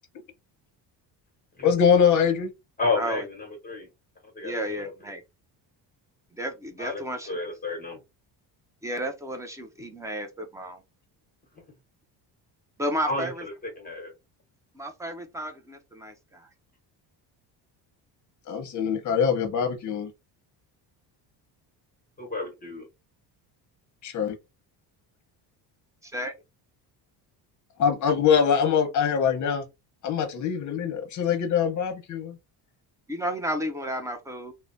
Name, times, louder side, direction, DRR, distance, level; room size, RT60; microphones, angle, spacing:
voice 1, 1.6-2.5 18.5-20.1 24.0-24.4 27.8-29.6 30.0-32.4, left 7 dB, 45° left, 0.9 m, -23 dB
voice 2, 2.8-3.9 4.3-5.1 6.8-8.0 13.1-13.3 13.6-14.1 22.2-22.9, left 3 dB, 20° left, 1.0 m, -31 dB
voice 3, 4.4-5.2 6.4-7.3 8.8-10.8 12.8-13.4 14.7-16.5 26.0-26.3 33.1-34.5, equal, 10° right, 0.3 m, -32 dB
3.1 x 2.1 x 2.6 m
cardioid pair, 145°, 43 cm